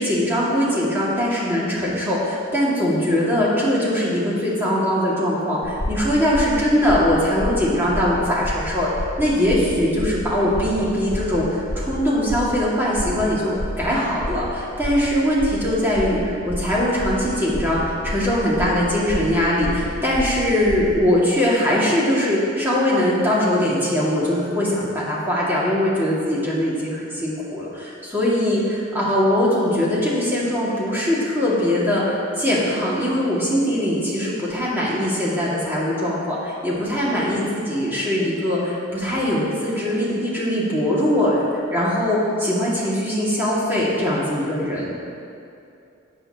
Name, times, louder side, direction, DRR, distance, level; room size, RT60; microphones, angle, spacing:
voice 1, 0.0-8.9 9.2-44.9, equal, 10° right, -7 dB, 2.3 m, -21 dB
sound 1, 5.6-21.1, left 1 dB, 60° left, 1.6 m, -30 dB
15.0 x 8.8 x 3.0 m, 2.6 s
head